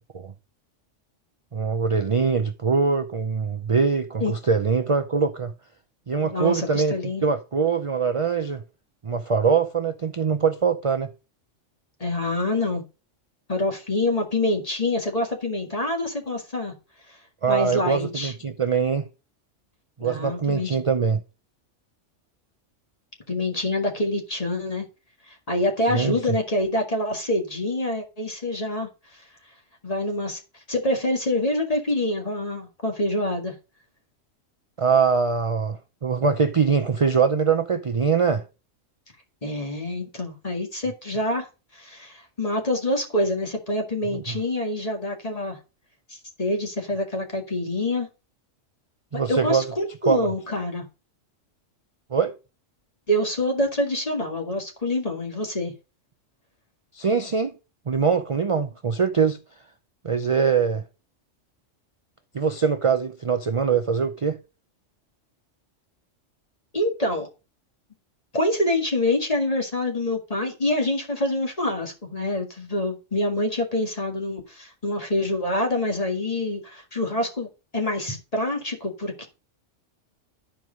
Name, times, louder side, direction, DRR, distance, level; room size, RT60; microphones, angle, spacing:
voice 1, 1.5-5.5 6.1-7.0 7.2-8.6 9.0-11.1 17.4-19.1 20.0-21.2 25.9-26.2 34.8-38.4 44.1-44.4 49.1-49.6 50.0-50.3 52.1-52.3 56.9-57.5 57.9-59.4 60.0-60.8 62.3-64.4, right 5 dB, 40° right, 0.5 m, -23 dB
voice 2, 6.2-7.2 12.0-12.8 13.5-16.7 17.1-17.2 17.5-18.3 20.0-20.8 23.3-24.9 25.3-29.2 29.8-30.4 30.7-33.5 39.4-41.5 41.7-45.6 46.1-48.1 49.3-50.8 53.1-55.7 66.7-67.3 68.3-79.3, left 1 dB, 30° left, 2.1 m, -26 dB
11.5 x 4.7 x 5.2 m
omnidirectional pair, 1.3 m